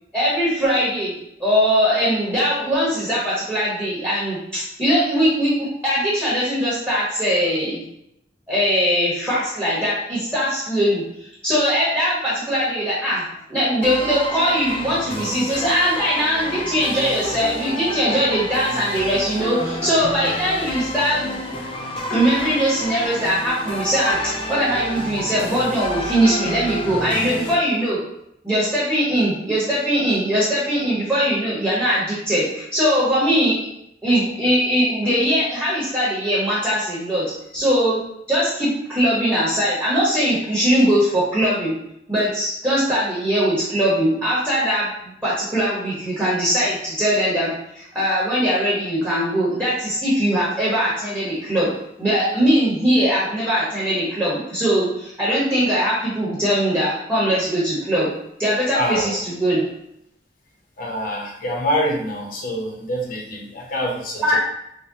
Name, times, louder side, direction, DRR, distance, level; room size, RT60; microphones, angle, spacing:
voice 1, 0.1-7.9 8.5-11.0 11.4-13.2 13.5-21.4 22.1-28.0 28.4-33.6 34.0-37.2 37.5-38.0 38.3-41.7 42.1-51.7 52.0-58.1 58.4-59.6 64.2-64.4, equal, 15° right, -9 dB, 1.1 m, -21 dB
sound 1, 13.8-27.5, left 1 dB, 30° left, 0.4 m, -29 dB
voice 2, 58.7-59.1 60.8-64.4, equal, 50° left, -1 dB, 0.8 m, -25 dB
4.9 x 2.2 x 2.7 m, 0.79 s
head